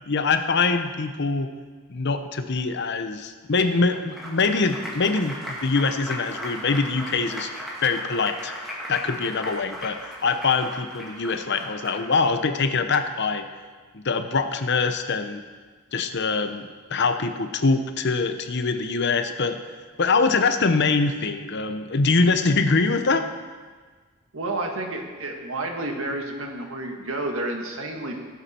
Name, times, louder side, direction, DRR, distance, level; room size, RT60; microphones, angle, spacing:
voice 1, 0.1-1.5 1.9-7.5 7.8-8.5 8.9-13.5 13.9-15.4 15.9-19.6 20.0-23.2, left 4 dB, 55° left, 8 dB, 0.8 m, -23 dB
Applause, 3.6-12.3, equal, ahead, 2.4 m, -37 dB
voice 2, 24.3-28.2, right 2 dB, 70° right, 2 dB, 1.8 m, -30 dB
17.5 x 8.3 x 4.4 m, 1.5 s
head